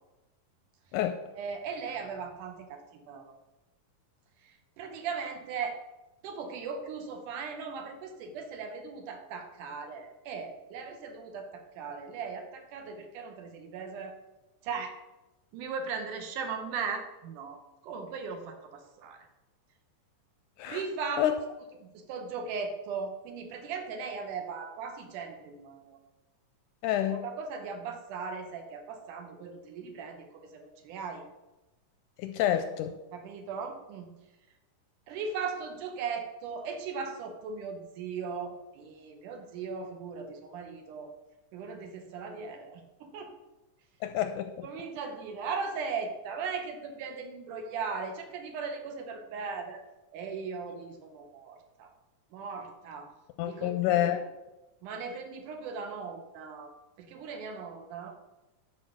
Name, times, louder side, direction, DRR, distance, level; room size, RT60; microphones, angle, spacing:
voice 1, 1.4-3.4 4.4-5.8 6.2-14.1 14.6-15.0 15.5-17.6 17.8-19.3 20.7-21.3 21.8-26.0 27.1-31.2 33.1-34.3 35.1-41.1 41.5-43.3 44.6-49.8 50.1-51.9 52.3-53.1 53.4-54.2 54.8-58.2, right 5 dB, 75° right, 5 dB, 2.4 m, -38 dB
voice 2, 26.8-27.2 32.2-33.0 44.0-44.7 53.4-54.2, left 12 dB, 80° left, 8 dB, 1.9 m, -28 dB
11.0 x 4.5 x 6.4 m, 1.0 s
omnidirectional pair, 3.9 m